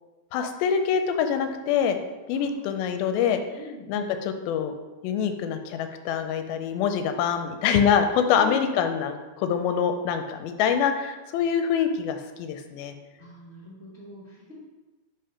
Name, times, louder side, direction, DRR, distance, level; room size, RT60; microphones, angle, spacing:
voice 1, 0.3-2.0 2.3-3.4 3.9-4.7 5.0-12.9, left 7 dB, 85° left, 7 dB, 2.4 m, -25 dB
voice 2, 2.3-2.7 3.5-3.9 8.3-8.6 13.2-14.5, left 3 dB, 35° right, -11 dB, 1.2 m, -43 dB
5.2 x 3.5 x 5.6 m, 1.2 s
omnidirectional pair, 4.2 m